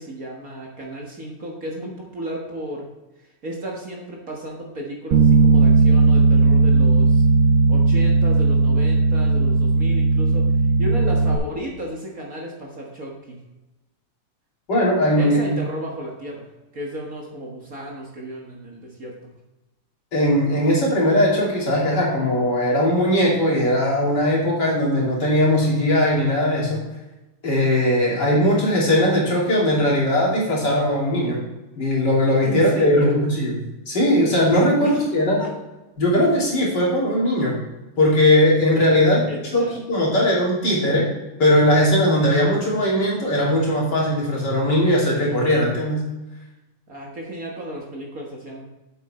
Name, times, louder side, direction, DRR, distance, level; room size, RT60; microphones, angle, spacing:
voice 1, 0.0-2.9 3.2-7.2 7.7-10.5 10.8-13.4 15.2-19.1 32.4-33.3 34.8-35.0 35.4-35.5 39.3-39.8 46.9-48.6, equal, 45° right, -2 dB, 1.8 m, -33 dB
Bass guitar, 5.1-11.4, right 4 dB, 70° right, 1.4 m, -16 dB
voice 2, 14.7-15.6 20.1-26.8 27.4-31.4 31.8-33.5 33.9-35.4 36.0-37.6 38.0-39.3 39.5-41.1 41.4-46.0, left 1 dB, 50° left, -5 dB, 3.6 m, -19 dB
8.2 x 7.9 x 4.3 m, 1.0 s
omnidirectional pair, 2.4 m